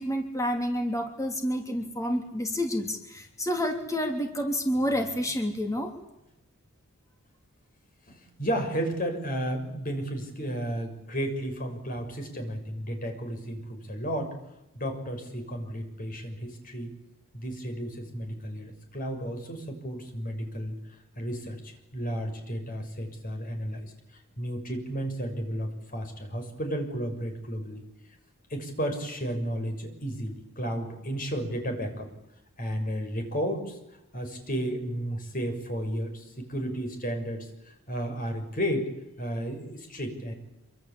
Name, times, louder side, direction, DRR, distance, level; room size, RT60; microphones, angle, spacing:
voice 1, 0.0-5.9, equal, 15° left, 4 dB, 3.3 m, -29 dB
voice 2, 8.1-14.3 14.7-16.9 17.3-20.8 21.2-23.9 24.4-27.8 28.5-32.1 32.6-33.8 34.1-38.9 39.2-40.3, equal, 40° left, 5 dB, 6.5 m, -33 dB
27.0 x 25.5 x 8.7 m, 0.89 s
head